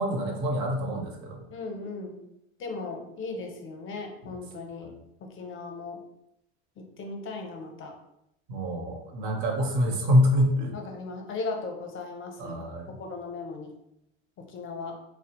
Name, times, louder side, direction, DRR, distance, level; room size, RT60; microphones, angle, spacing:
voice 1, 0.0-1.4 4.8-4.9 8.5-10.7 12.4-12.9, equal, 65° right, 2 dB, 0.8 m, -26 dB
voice 2, 1.5-2.2 2.6-4.9 5.2-6.0 6.8-7.9 10.7-13.7 14.4-14.9, left 3 dB, 35° left, 3 dB, 0.6 m, -37 dB
2.7 x 2.0 x 2.9 m, 0.81 s
hypercardioid pair, 95°, 34 cm